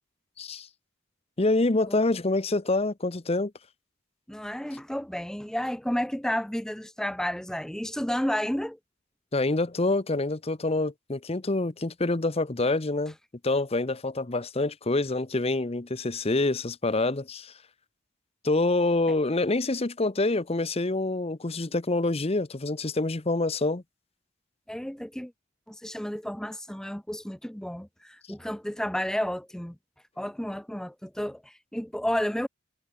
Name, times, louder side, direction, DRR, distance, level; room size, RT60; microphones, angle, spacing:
voice 1, 1.4-3.5 9.3-13.1 13.4-17.5 18.4-23.8, left 2 dB, 30° left, 0.8 m, -26 dB
voice 2, 4.3-8.8 24.7-25.3 25.7-29.8 30.2-32.5, equal, 5° left, 0.5 m, -31 dB
head